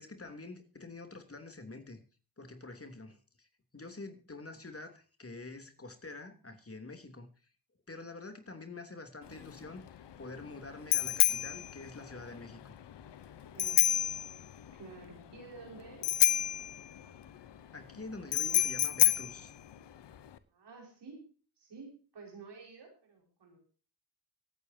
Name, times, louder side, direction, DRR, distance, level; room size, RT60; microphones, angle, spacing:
voice 1, 0.0-2.0 2.4-3.5 3.7-7.3 7.9-9.8 10.2-12.8 17.7-19.5, left 3 dB, 35° left, 7 dB, 3.2 m, -46 dB
Bicycle bell, 9.2-20.4, left 11 dB, 85° left, 1.0 m, -31 dB
voice 2, 13.5-14.0 14.7-16.1 20.5-21.3 21.6-23.6, right 4 dB, 80° right, 1 dB, 5.5 m, -50 dB
24.5 x 9.3 x 2.8 m, 0.37 s
cardioid pair, 45°, 41 cm